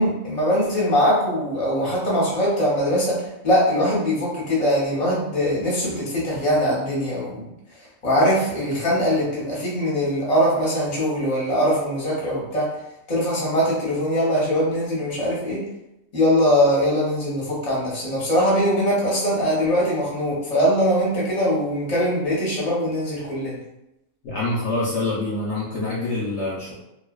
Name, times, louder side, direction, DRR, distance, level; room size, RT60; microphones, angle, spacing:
voice 1, 0.0-3.2 3.4-7.5 8.0-12.7 13.1-15.6 16.1-23.6, equal, 30° left, -6 dB, 0.8 m, -21 dB
voice 2, 24.2-26.7, left 2 dB, 60° left, -7 dB, 0.9 m, -26 dB
2.4 x 2.3 x 2.2 m, 0.87 s
omnidirectional pair, 1.4 m